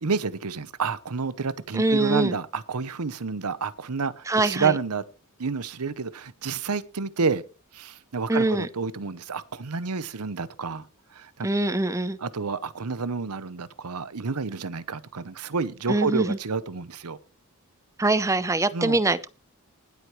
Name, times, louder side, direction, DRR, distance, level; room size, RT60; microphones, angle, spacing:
voice 1, 0.0-5.0 5.4-7.4 7.7-10.9 11.1-11.5 12.2-17.2 18.7-19.0, right 5 dB, 85° right, 0.9 m, -29 dB
voice 2, 1.7-2.4 4.3-4.8 8.3-8.7 11.4-12.2 15.9-16.4 18.0-19.3, right 2 dB, 15° right, 0.6 m, -23 dB
20.0 x 8.1 x 3.1 m
head